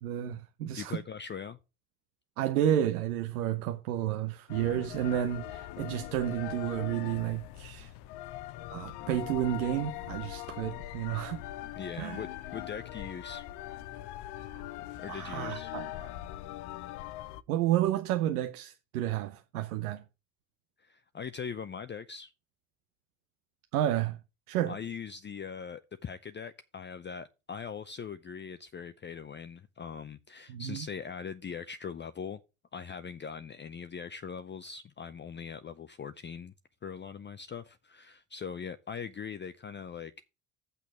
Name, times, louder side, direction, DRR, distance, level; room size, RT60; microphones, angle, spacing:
voice 1, 0.0-1.0 2.4-7.9 8.7-11.4 12.0-12.2 14.4-14.6 15.1-16.1 17.5-20.0 23.7-24.2 24.5-24.8 30.5-30.8, right 11 dB, 90° right, 0.8 m, -31 dB
voice 2, 0.7-1.6 11.7-13.5 14.9-15.7 20.8-22.3 24.7-32.4 32.7-36.5 36.8-40.3, left 6 dB, 25° left, 0.6 m, -41 dB
sound 1, 4.5-17.4, left 14 dB, 65° left, 0.7 m, -41 dB
6.7 x 6.2 x 6.0 m
hypercardioid pair, 65°, 43 cm